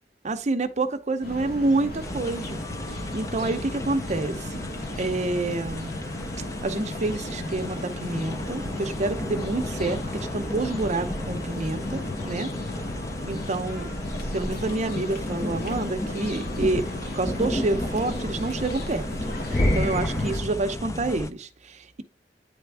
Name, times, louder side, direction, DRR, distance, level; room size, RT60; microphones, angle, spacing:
voice 1, 0.2-2.6 3.1-4.6 5.0-5.9 6.6-12.5 13.3-13.9 14.3-16.9 17.1-19.1 19.5-22.0, right 2 dB, 40° right, 0.7 m, -28 dB
sound 1, 1.2-20.4, left 1 dB, 60° left, 1.2 m, -35 dB
sound 2, 2.0-21.3, left 1 dB, 20° left, 0.5 m, -33 dB
9.2 x 3.4 x 3.4 m
head